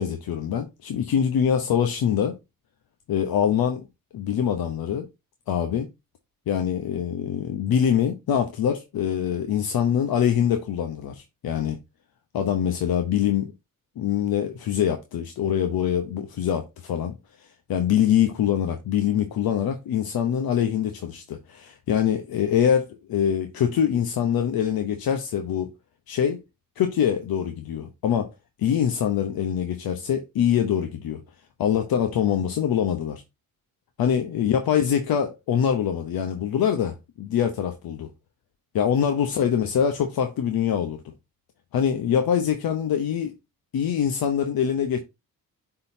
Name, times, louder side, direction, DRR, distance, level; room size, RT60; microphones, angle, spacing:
voice 1, 0.0-2.3 3.1-3.8 4.1-5.1 5.5-5.9 6.5-11.8 12.3-13.5 14.0-25.7 26.1-26.4 26.8-28.3 28.6-31.2 31.6-33.2 34.0-38.1 38.7-41.0 41.7-43.3 43.7-45.0, left 9 dB, 80° left, 0.8 m, -24 dB
9.7 x 3.9 x 2.6 m
cardioid pair, 75°, 36 cm